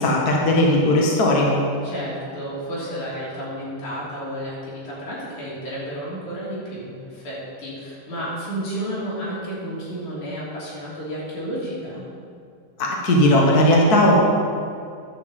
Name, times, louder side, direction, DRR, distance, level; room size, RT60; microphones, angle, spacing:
voice 1, 0.0-1.6 12.8-14.1, left 1 dB, 40° left, -2 dB, 1.4 m, -17 dB
voice 2, 1.8-12.0, equal, 60° left, -7 dB, 4.6 m, -31 dB
11.0 x 5.8 x 7.7 m, 2.3 s
omnidirectional pair, 3.8 m